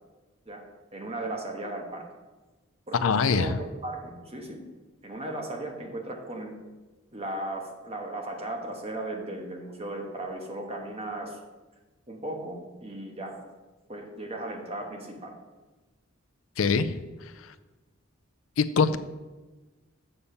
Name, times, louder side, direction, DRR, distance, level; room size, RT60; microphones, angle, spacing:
voice 1, 0.9-2.0 2.9-4.6 5.0-6.5 7.1-11.4 12.1-13.4 13.9-15.3, right 1 dB, 30° right, 2 dB, 1.3 m, -36 dB
voice 2, 3.0-3.6 16.6-17.0 18.6-19.0, left 5 dB, 75° left, 12 dB, 0.5 m, -23 dB
7.0 x 6.9 x 5.6 m, 1.2 s
head